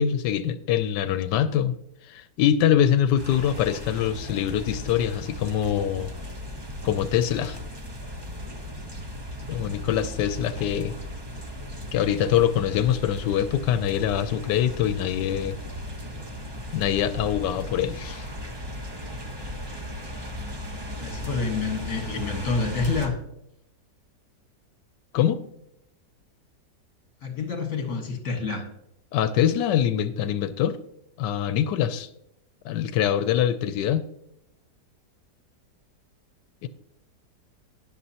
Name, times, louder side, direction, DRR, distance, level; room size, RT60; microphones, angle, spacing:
voice 1, 0.0-1.8 2.1-6.1 6.8-7.6 9.5-10.9 11.9-15.6 16.7-18.3 25.1-25.4 29.1-30.8 31.2-32.1 32.6-34.1 36.6-36.7, left 10 dB, 85° left, 13 dB, 1.2 m, -24 dB
sound 1, 3.2-23.1, left 1 dB, 20° right, 0.7 m, -36 dB
voice 2, 21.0-23.2 27.2-28.7, left 4 dB, 60° left, 4 dB, 1.9 m, -28 dB
18.0 x 6.6 x 2.8 m, 0.77 s
omnidirectional pair, 1.9 m